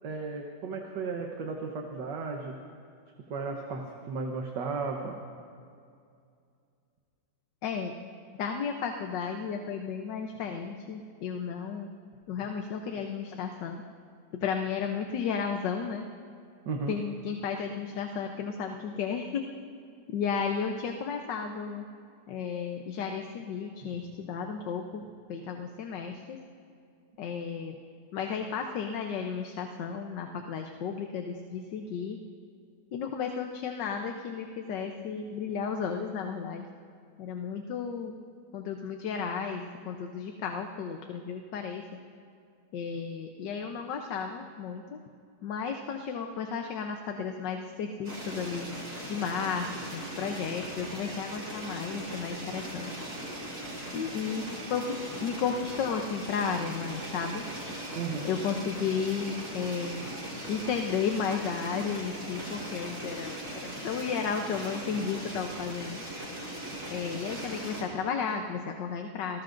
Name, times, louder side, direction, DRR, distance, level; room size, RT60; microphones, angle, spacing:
voice 1, 0.0-2.6 3.3-5.2 16.7-17.0 57.9-58.3, right 4 dB, 85° right, 1 dB, 1.8 m, -34 dB
voice 2, 7.6-7.9 8.4-11.9 12.3-13.8 14.3-16.1 16.9-19.5 20.1-21.8 22.3-25.0 25.3-26.4 27.2-27.8 28.1-32.2 32.9-36.6 37.2-38.2 38.5-42.0 42.7-45.0 45.4-48.7 49.1-52.9 53.9-57.4 58.2-60.0 60.5-66.0 66.9-69.4, left 6 dB, 90° left, 4 dB, 1.5 m, -33 dB
sound 1, 48.0-67.8, right 1 dB, 65° right, 5.1 m, -39 dB
28.0 x 19.5 x 2.6 m, 2.4 s
omnidirectional pair, 1.8 m